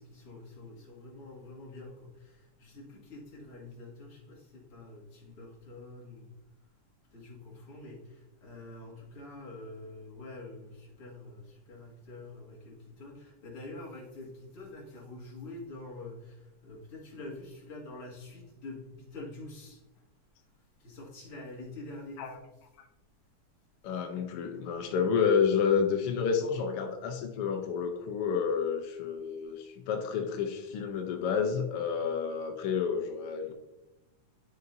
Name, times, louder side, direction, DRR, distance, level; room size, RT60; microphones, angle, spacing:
voice 1, 0.0-6.3 7.1-19.8 20.8-22.7, left 2 dB, 55° left, -4 dB, 2.5 m, -46 dB
voice 2, 23.8-33.5, left 6 dB, 75° left, 3 dB, 1.3 m, -30 dB
9.8 x 6.7 x 2.6 m, 0.96 s
omnidirectional pair, 3.3 m